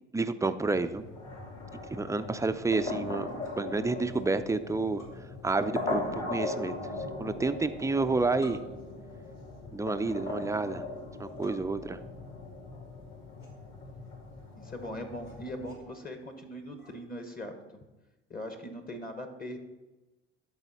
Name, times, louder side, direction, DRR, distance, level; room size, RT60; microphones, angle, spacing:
voice 1, 0.1-1.0 1.9-3.3 3.6-5.0 5.4-6.8 7.2-8.6 9.7-10.9 11.2-12.0, right 3 dB, 10° right, 11 dB, 0.5 m, -29 dB
sound 1, 0.6-15.7, left 2 dB, 50° left, 3.0 m, -39 dB
sound 2, 1.6-17.1, equal, 80° left, 2.2 m, -55 dB
voice 2, 14.5-17.6 18.3-19.6, left 1 dB, 25° left, 6 dB, 1.3 m, -40 dB
12.0 x 4.1 x 4.1 m, 1.1 s
hypercardioid pair, 65°, 33 cm